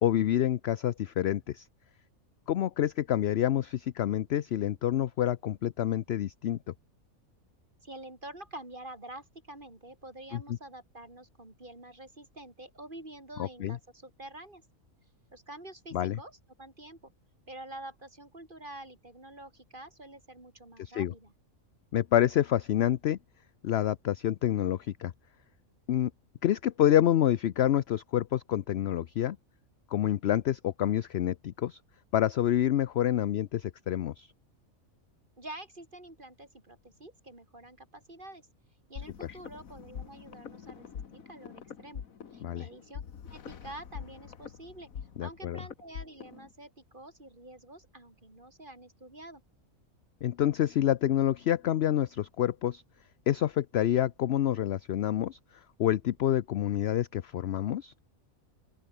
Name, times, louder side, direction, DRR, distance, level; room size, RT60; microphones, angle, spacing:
voice 1, 0.0-1.6 2.5-6.6 10.3-10.4 13.4-13.8 15.9-16.2 21.0-21.1 21.9-23.2 23.6-25.1 25.9-26.1 26.4-29.4 29.9-31.8 32.1-34.3 42.4-42.7 45.2-45.6 50.2-52.8 53.3-55.4 55.8-57.9, left 11 dB, 60° left, 0.8 m, -27 dB
voice 2, 7.8-14.6 15.3-17.1 17.5-21.3 35.4-38.4 38.9-42.0 42.3-44.9 45.2-49.4, right 1 dB, 35° right, 4.5 m, -47 dB
sound 1, 39.0-46.5, left 7 dB, 80° left, 1.8 m, -44 dB
open air
omnidirectional pair, 1.4 m